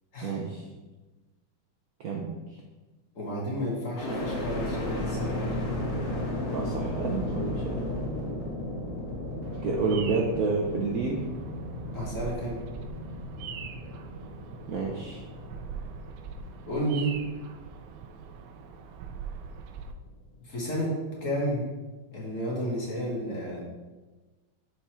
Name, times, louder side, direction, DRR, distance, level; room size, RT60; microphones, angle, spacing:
voice 1, 0.2-0.6 2.0-2.4 6.5-7.8 9.6-11.3 14.7-15.2, right 4 dB, 65° right, 0 dB, 0.9 m, -29 dB
voice 2, 3.2-5.5 11.9-12.6 16.7-17.2 20.4-21.7 22.1-23.6, equal, 40° left, -4 dB, 1.7 m, -31 dB
sound 1, 3.9-18.0 18.5-19.2, left 1 dB, 65° left, 2.2 m, -35 dB
Bird vocalization bird call bird song, 9.4-19.9, right 6 dB, 80° right, 1.4 m, -43 dB
6.7 x 4.7 x 4.3 m, 1.2 s
omnidirectional pair, 2.2 m